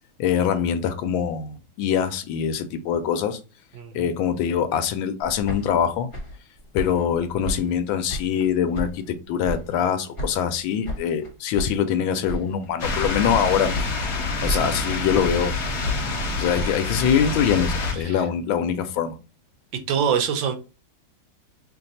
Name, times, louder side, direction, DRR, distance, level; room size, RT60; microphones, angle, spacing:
voice 1, 0.2-3.4 3.9-6.1 6.7-13.9 14.4-15.5 16.4-19.1, left 8 dB, 80° left, 1.3 m, -24 dB
voice 2, 3.7-4.1 14.4-14.7 17.9-18.2 19.9-20.6, right 7 dB, 75° right, 1.3 m, -25 dB
sound 1, 5.2-8.5 8.7-9.9 10.2-12.0 12.2-12.7 13.0-13.5 13.7-14.2 14.4-15.5 15.8-18.0, equal, 30° left, 1.4 m, -34 dB
sound 2, 12.8-17.9, left 3 dB, 50° left, 0.8 m, -27 dB
3.3 x 2.6 x 3.9 m
omnidirectional pair, 2.2 m